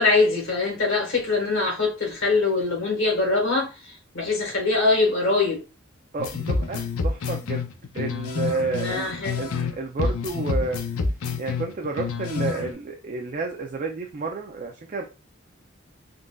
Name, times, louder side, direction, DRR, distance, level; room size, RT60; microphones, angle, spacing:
voice 1, 0.0-3.7 4.1-5.6 8.7-9.5, left 3 dB, 60° left, 1.3 m, -23 dB
voice 2, 6.1-7.7 7.9-9.5 9.8-10.8 11.4-15.0, right 3 dB, 35° right, 0.4 m, -30 dB
sound 1, 6.2-9.7 10.0-12.7, left 4 dB, 80° left, 0.5 m, -28 dB
3.7 x 2.5 x 2.2 m
head